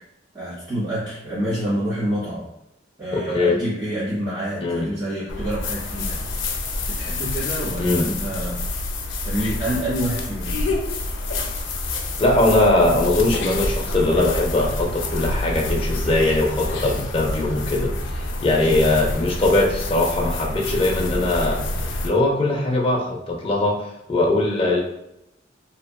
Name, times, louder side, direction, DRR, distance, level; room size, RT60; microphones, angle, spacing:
voice 1, 0.3-2.4 3.0-6.2 6.9-8.6 9.2-10.6, right 1 dB, 20° right, -12 dB, 0.9 m, -27 dB
voice 2, 3.1-3.6 4.6-4.9 7.8-8.1 12.2-21.6 21.9-24.8, left 2 dB, 30° left, 0 dB, 0.4 m, -21 dB
sound 1, 5.3-22.1, left 2 dB, 85° left, 0.4 m, -27 dB
2.8 x 2.4 x 2.2 m, 0.85 s
head